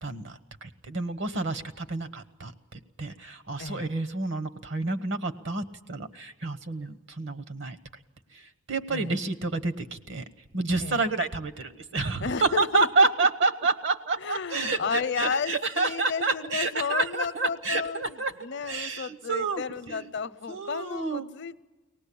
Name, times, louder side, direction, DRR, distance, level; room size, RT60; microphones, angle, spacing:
voice 1, 0.0-2.5 3.0-7.8 8.3-10.2 10.5-18.3 18.6-19.6 19.9-20.0 20.5-21.3, right 3 dB, 65° right, 13 dB, 1.1 m, -29 dB
voice 2, 3.6-3.9 8.9-9.1 10.8-11.0 12.2-13.1 14.2-21.6, left 5 dB, 60° left, 13 dB, 0.7 m, -32 dB
23.5 x 18.5 x 8.5 m, 1.2 s
head